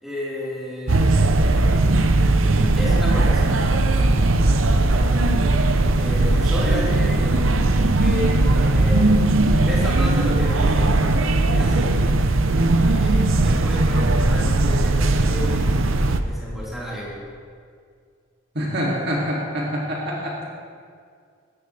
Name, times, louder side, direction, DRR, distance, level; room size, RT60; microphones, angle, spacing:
voice 1, 0.0-1.2 2.8-3.7 4.6-4.8 6.0-7.4 8.0-9.2 9.7-12.0 12.9-15.6 16.2-17.2, left 1 dB, ahead, -9 dB, 4.4 m, -32 dB
sound 1, 0.9-16.2, right 2 dB, 75° right, 0.8 m, -18 dB
voice 2, 4.7-5.1 18.5-20.5, equal, 50° right, -4 dB, 2.7 m, -26 dB
19.0 x 15.0 x 3.4 m, 2.1 s
head